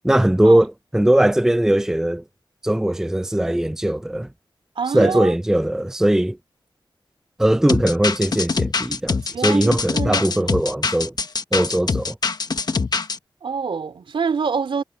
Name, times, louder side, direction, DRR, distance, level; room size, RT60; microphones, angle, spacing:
voice 1, 0.0-2.2 2.6-4.3 4.9-6.4 7.4-11.1 11.5-12.2, right 1 dB, 5° right, 0.5 m, -19 dB
voice 2, 4.7-5.3 9.3-10.5 13.4-14.8, right 5 dB, 80° right, 3.0 m, -26 dB
sound 1, 7.7-13.2, left 4 dB, 50° left, 1.2 m, -24 dB
wide cardioid pair, 90°, 9 cm